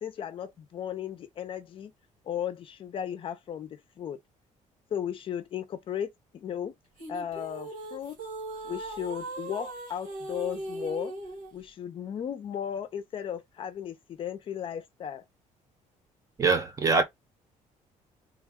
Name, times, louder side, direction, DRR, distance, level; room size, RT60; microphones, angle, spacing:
voice 1, 0.0-1.9 2.3-4.2 4.9-6.7 7.1-8.2 8.6-11.1 11.5-15.2, left 9 dB, 40° left, 0.6 m, -35 dB
sound 1, 7.0-11.5, right 2 dB, 90° right, 1.7 m, -39 dB
voice 2, 16.4-17.0, right 4 dB, 25° right, 0.7 m, -23 dB
3.5 x 2.2 x 3.5 m
cardioid pair, 165°, 13 cm